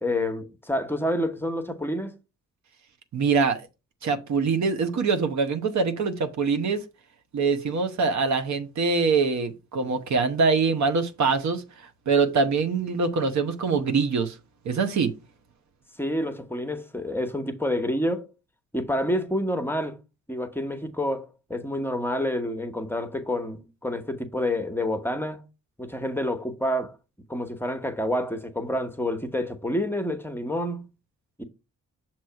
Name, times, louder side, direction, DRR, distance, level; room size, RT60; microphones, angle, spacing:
voice 1, 0.0-2.2 16.0-18.3 18.7-20.0 20.3-25.4 25.8-27.0 27.3-30.9 31.4-31.5, left 1 dB, 5° left, 1.0 m, -28 dB
voice 2, 3.1-3.6 4.0-6.8 7.3-14.4 14.6-15.1, right 4 dB, 65° right, 1.0 m, -24 dB
6.2 x 3.0 x 5.7 m
supercardioid pair, 55°, 31 cm